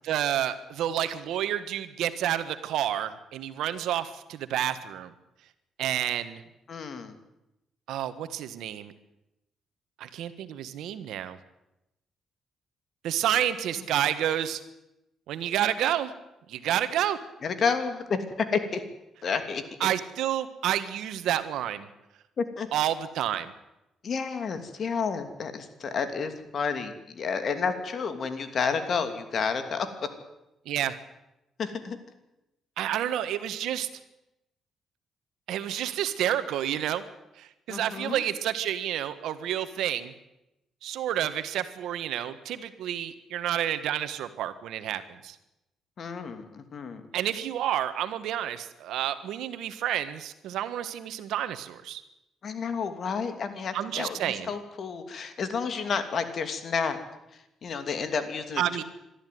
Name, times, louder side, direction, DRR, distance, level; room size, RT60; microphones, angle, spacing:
voice 1, 0.0-5.1 5.8-6.4 7.9-8.9 10.0-11.4 13.0-14.6 15.3-16.1 16.5-17.2 19.8-21.9 22.7-23.5 30.6-31.0 32.8-33.9 35.5-37.0 37.4-40.1 40.8-45.3 47.1-52.0 53.7-54.5 58.6-58.8, right 11 dB, 85° right, 11 dB, 1.5 m, -29 dB
voice 2, 6.7-7.2 17.4-18.8 19.2-19.6 22.4-22.7 24.0-29.9 31.6-32.0 37.7-38.3 46.0-47.1 52.4-57.0 57.3-58.8, left 5 dB, 55° left, 9 dB, 2.7 m, -30 dB
22.0 x 13.5 x 9.4 m, 0.91 s
cardioid pair, 90°, 0 cm